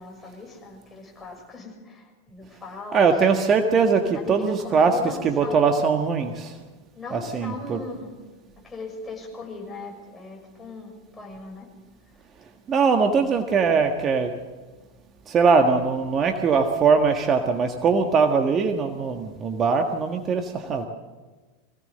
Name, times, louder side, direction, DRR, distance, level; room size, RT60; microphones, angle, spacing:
voice 1, 0.0-3.0 3.3-3.5 4.1-5.6 6.9-8.1 8.6-11.7, left 3 dB, 15° left, 0 dB, 6.5 m, -39 dB
voice 2, 2.9-6.5 7.1-7.8 12.7-14.3 15.3-20.9, right 5 dB, 30° right, 5 dB, 1.6 m, -21 dB
23.5 x 17.0 x 6.7 m, 1.3 s
figure-of-eight pair, 90°, 0 cm